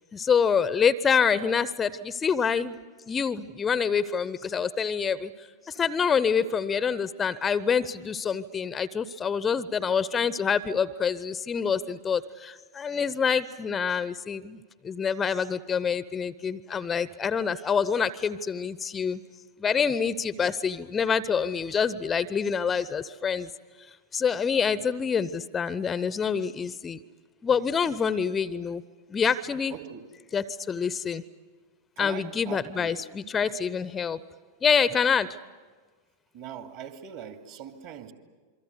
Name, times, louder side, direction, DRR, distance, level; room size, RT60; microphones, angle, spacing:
voice 1, 0.1-2.8 3.1-5.3 5.7-14.6 14.8-19.2 19.6-23.5 24.1-27.0 27.4-28.8 29.1-29.8 30.3-31.2 32.0-34.2 34.6-35.4, left 6 dB, 20° left, 18 dB, 0.7 m, -26 dB
voice 2, 29.7-30.1 32.0-32.9 36.3-38.1, right 8 dB, 45° right, 6 dB, 2.5 m, -41 dB
27.5 x 24.0 x 8.2 m, 1.4 s
figure-of-eight pair, 90°, 0 cm